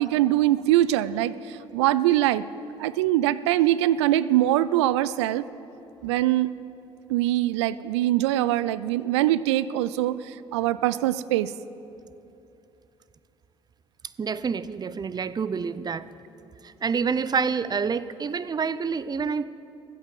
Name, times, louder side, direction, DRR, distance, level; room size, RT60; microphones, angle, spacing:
voice 1, 0.0-2.4 2.8-5.4 6.0-6.5 7.1-11.5, right 14 dB, 75° right, 17 dB, 0.4 m, -23 dB
voice 2, 14.2-16.1 16.6-19.4, right 5 dB, 30° right, 16 dB, 0.6 m, -27 dB
15.0 x 8.2 x 7.3 m, 2.9 s
hypercardioid pair, 55°, 15 cm